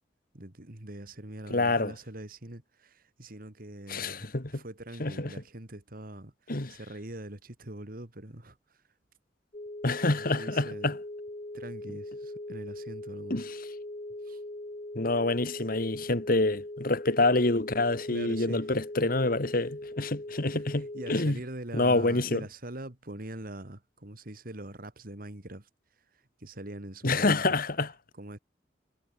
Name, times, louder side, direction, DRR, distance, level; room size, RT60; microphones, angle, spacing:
voice 1, 0.3-4.3 4.5-8.6 10.1-11.0 11.5-13.4 14.2-14.4 18.1-18.6 20.5-25.7 26.4-27.6 28.2-28.4, right 1 dB, 55° right, 2.5 m, -43 dB
voice 2, 1.5-1.9 3.9-4.5 5.0-5.3 6.5-6.8 9.8-11.0 13.3-13.6 15.0-21.4 21.7-22.4 27.0-27.9, left 2 dB, 55° left, 2.1 m, -27 dB
sound 1, 9.5-21.1, left 1 dB, 35° left, 1.8 m, -40 dB
head